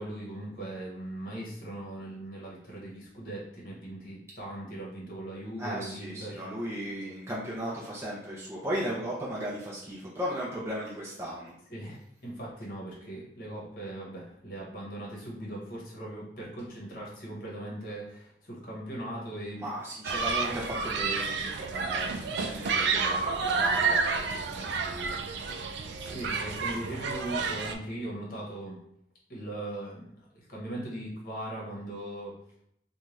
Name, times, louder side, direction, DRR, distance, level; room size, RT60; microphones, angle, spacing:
voice 1, 0.0-6.5 11.7-12.0 12.2-19.6 26.0-28.8 29.3-32.3, right 1 dB, 55° left, -4 dB, 1.0 m, -39 dB
voice 2, 5.6-11.5 19.6-25.2, equal, 15° right, -6 dB, 0.5 m, -36 dB
Human group actions, 20.0-27.7, right 4 dB, 75° right, 0.3 m, -30 dB
2.6 x 2.3 x 3.1 m, 0.72 s
head